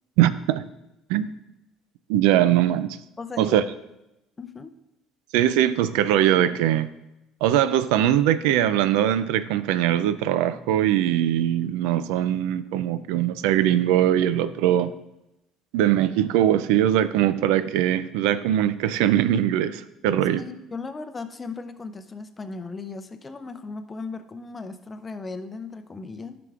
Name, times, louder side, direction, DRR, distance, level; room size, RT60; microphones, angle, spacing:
voice 1, 0.2-0.6 1.1-1.3 2.1-3.0 3.4-3.6 5.3-6.9 7.4-14.9 15.7-20.4, right 11 dB, 85° right, 13 dB, 0.3 m, -21 dB
voice 2, 3.2-3.6 4.4-4.7 20.3-26.4, left 4 dB, 25° left, 9 dB, 0.6 m, -36 dB
11.0 x 5.9 x 2.4 m, 0.89 s
cardioid pair, 105°, 0 cm